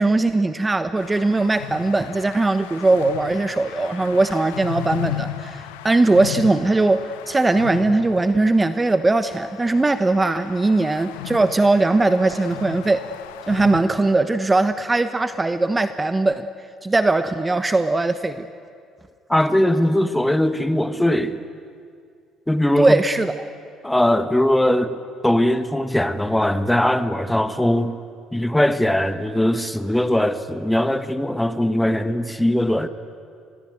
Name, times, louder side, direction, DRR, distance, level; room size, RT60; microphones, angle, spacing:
voice 1, 0.0-13.0 13.5-16.5 16.8-18.5 22.8-23.5, right 2 dB, 20° right, 11 dB, 1.1 m, -20 dB
sound 1, 1.0-13.8, left 12 dB, 90° left, 1.1 m, -35 dB
voice 2, 19.3-21.4 22.5-23.0 23.8-25.0 25.2-27.9 28.3-32.9, left 1 dB, 5° left, 11 dB, 1.6 m, -20 dB
25.0 x 21.5 x 9.3 m, 2.3 s
supercardioid pair, 65°, 0 cm